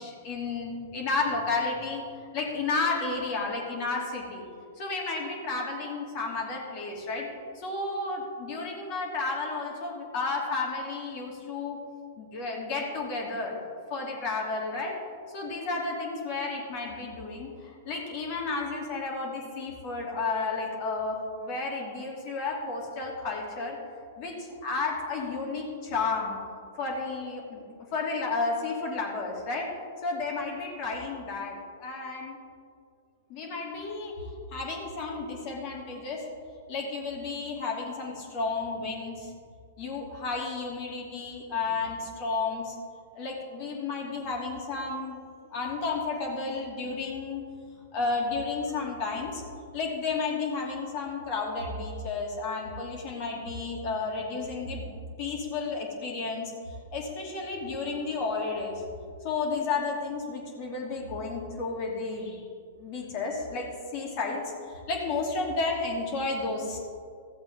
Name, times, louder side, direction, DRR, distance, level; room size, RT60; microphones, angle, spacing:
voice 1, 0.0-2.0 2.3-4.4 4.8-7.3 7.5-11.8 12.2-13.6 13.9-15.0 15.3-23.8 24.2-26.4 26.8-27.6 27.9-29.7 30.0-32.4 33.3-34.1 34.5-36.3 36.7-39.3 39.8-42.7 43.1-45.2 45.5-47.5 47.9-49.4 49.7-54.9 55.2-58.8 59.2-62.5 62.8-66.8, left 3 dB, 45° left, -1 dB, 2.5 m, -32 dB
14.5 x 7.9 x 3.7 m, 2.2 s
hypercardioid pair, 110°, 0 cm